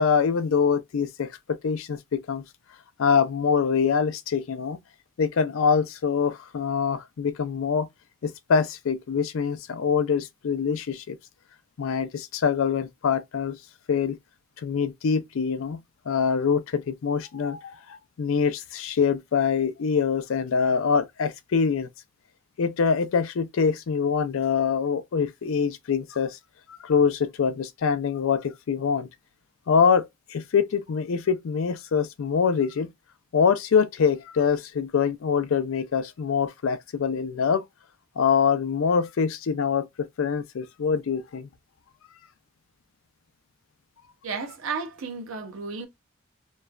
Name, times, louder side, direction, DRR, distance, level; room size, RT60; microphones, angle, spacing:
voice 1, 0.0-2.4 3.0-4.8 5.2-7.9 8.2-11.2 11.8-13.6 13.9-14.2 14.6-15.8 16.1-21.9 22.6-26.4 26.7-29.1 29.7-32.9 33.3-37.6 38.2-41.5, left 6 dB, 75° left, 0.4 m, -24 dB
voice 2, 44.2-45.9, right 4 dB, 80° right, 0.7 m, -33 dB
3.0 x 2.3 x 2.2 m
head